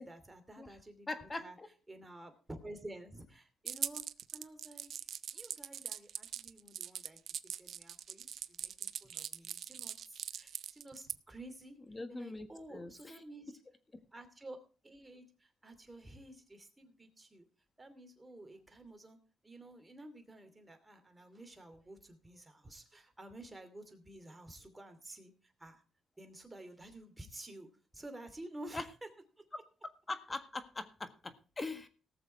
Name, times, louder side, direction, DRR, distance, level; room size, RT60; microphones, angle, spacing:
voice 1, 0.0-1.6 1.9-4.0 4.3-5.1 5.3-7.2 7.6-11.8 12.1-13.5 14.1-14.6 14.8-17.4 17.8-19.2 19.4-25.8 26.2-27.7 27.9-28.8, right 1 dB, 15° right, 6 dB, 2.7 m, -51 dB
voice 2, 1.1-1.7 11.9-13.2 13.5-13.6 28.7-28.8 30.1-31.9, left 2 dB, 25° left, 9 dB, 1.6 m, -42 dB
sound 1, 3.7-11.2, right 9 dB, 65° right, 0.6 m, -41 dB
18.0 x 7.0 x 4.6 m, 0.36 s
cardioid pair, 90°, 0 cm